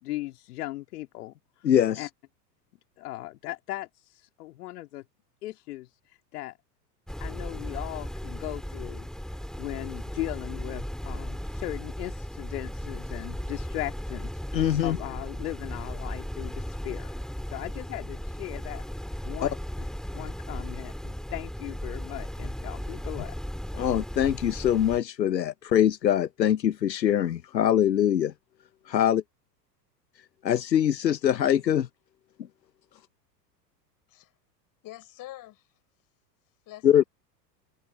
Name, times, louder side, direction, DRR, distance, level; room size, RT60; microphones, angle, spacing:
voice 1, 0.0-1.3 2.0-2.1 3.0-5.0 5.4-5.9 6.3-6.5 7.2-9.1 9.6-17.1 17.5-18.8 19.2-19.5 20.1-23.4, left 16 dB, 65° left, 2.6 m, -38 dB
voice 2, 1.6-2.1 14.5-15.0 19.4-19.5 23.8-28.3 28.9-29.2 30.4-31.9 36.8-37.0, left 10 dB, 85° left, 1.0 m, -23 dB
sound 1, 7.1-25.0, equal, ahead, 4.4 m, -36 dB
voice 3, 34.8-35.7 36.7-37.1, left 15 dB, 40° left, 6.3 m, -45 dB
hypercardioid pair, 90°, 49 cm